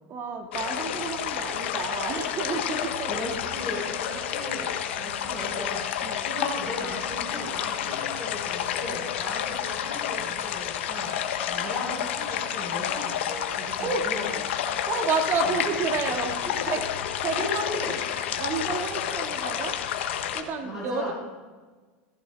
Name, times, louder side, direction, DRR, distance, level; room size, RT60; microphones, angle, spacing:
voice 1, 0.1-3.7 6.0-6.3 13.8-14.1 14.9-16.8 17.2-17.6 18.4-19.8 20.3-21.1, right 4 dB, 40° right, 3 dB, 2.1 m, -30 dB
sound 1, 0.5-20.4, left 9 dB, 85° left, 1.3 m, -30 dB
voice 2, 3.1-11.2 11.5-14.4 15.4-15.5 16.4-16.8 17.3-18.0 20.6-21.1, left 1 dB, 5° right, -6 dB, 4.8 m, -37 dB
17.5 x 15.0 x 3.5 m, 1.4 s
supercardioid pair, 130°, 6 cm